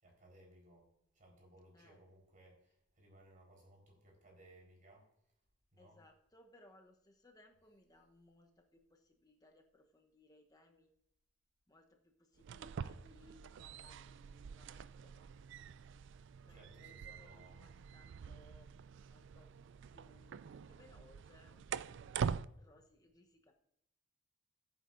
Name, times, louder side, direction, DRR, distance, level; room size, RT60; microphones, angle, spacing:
voice 1, 0.0-5.4 5.7-6.0 16.5-17.6, right 1 dB, 45° right, 0 dB, 4.2 m, -63 dB
voice 2, 5.8-10.9 11.7-15.3 16.4-18.7 19.1-19.5 19.9-23.5, left 1 dB, 20° left, 3 dB, 0.9 m, -65 dB
sound 1, 12.4-22.5, right 7 dB, 65° right, 0.4 m, -45 dB
15.0 x 8.1 x 2.6 m, 0.80 s
head